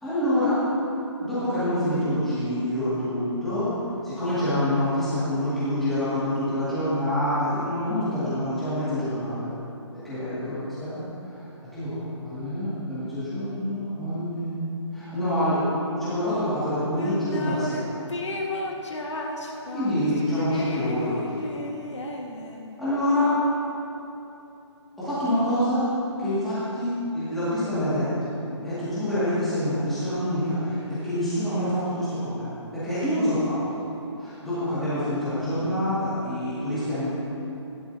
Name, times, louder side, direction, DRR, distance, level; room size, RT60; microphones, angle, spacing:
voice 1, 0.0-0.6 1.2-3.7 4.0-9.5 9.9-11.4 11.7-14.6 14.9-17.9 19.7-21.5 22.8-23.3 25.0-25.9 26.2-28.3 28.6-32.5 32.7-33.8 34.2-37.1, left 1 dB, ahead, -15 dB, 2.0 m, -26 dB
sound 1, 17.0-17.8 18.1-22.7, left 2 dB, 70° left, 1.6 m, -33 dB
16.0 x 11.0 x 2.7 m, 2.9 s
hypercardioid pair, 180°, 16 cm